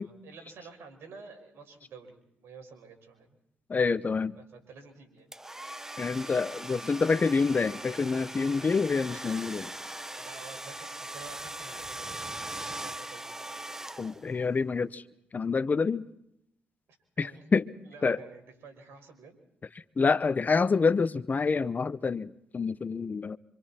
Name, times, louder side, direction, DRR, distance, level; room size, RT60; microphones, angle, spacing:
voice 1, 0.0-3.4 4.3-5.3 10.1-13.7 17.2-17.4 17.8-19.4, right 4 dB, 75° right, 5 dB, 6.0 m, -50 dB
voice 2, 3.7-4.3 6.0-9.7 14.0-15.0 15.3-16.1 17.2-17.7 18.0-18.2 20.0-23.4, left 4 dB, 40° left, 15 dB, 0.9 m, -27 dB
sound 1, 5.3-14.4, right 1 dB, 10° right, 1.1 m, -40 dB
27.0 x 26.0 x 4.5 m, 0.79 s
supercardioid pair, 60°, 4 cm